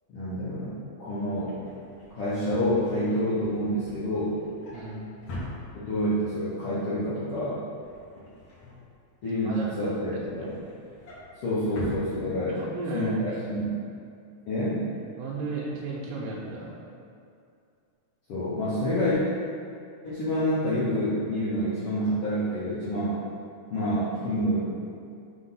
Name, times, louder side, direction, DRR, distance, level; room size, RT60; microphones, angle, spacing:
voice 1, 0.1-1.6 2.1-4.4 5.7-7.6 9.2-10.5 11.3-12.6 12.9-13.8 14.5-14.8 18.3-19.2 20.0-23.2 23.7-24.7, equal, 75° left, -11 dB, 1.3 m, -28 dB
Drawer open or close, 1.4-6.2 6.6-6.9 7.2-9.4 9.8-12.8 13.2-13.4 13.6-13.7, left 1 dB, 55° left, 1.8 m, -43 dB
voice 2, 4.7-5.1 9.5-10.5 12.6-13.6 15.2-16.8, right 3 dB, 75° right, -5 dB, 2.2 m, -35 dB
5.9 x 3.6 x 5.6 m, 2.4 s
omnidirectional pair, 4.2 m